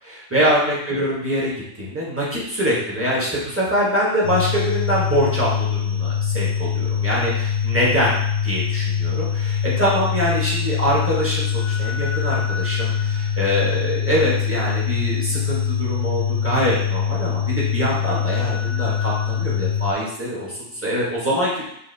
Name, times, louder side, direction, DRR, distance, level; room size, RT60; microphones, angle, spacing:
voice 1, 0.0-8.1 8.4-21.6, equal, 10° right, -6 dB, 1.2 m, -24 dB
sound 1, 4.2-19.9, left 8 dB, 50° left, 0.8 m, -23 dB
6.7 x 2.8 x 2.7 m, 0.76 s
omnidirectional pair, 1.2 m